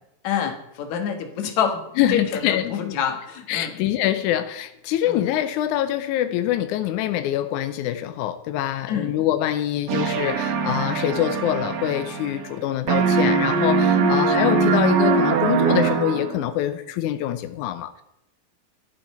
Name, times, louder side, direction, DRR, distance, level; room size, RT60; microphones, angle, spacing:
voice 1, 0.2-1.8 2.1-3.7 5.1-5.2 8.9-9.2 14.0-14.2, left 8 dB, 60° left, 2.4 m, -27 dB
voice 2, 2.0-3.0 3.5-18.0, left 12 dB, 85° left, 1.7 m, -25 dB
sound 1, 9.9-12.6 12.9-16.5, right 5 dB, 70° right, 2.6 m, -22 dB
11.5 x 11.5 x 4.2 m
omnidirectional pair, 4.3 m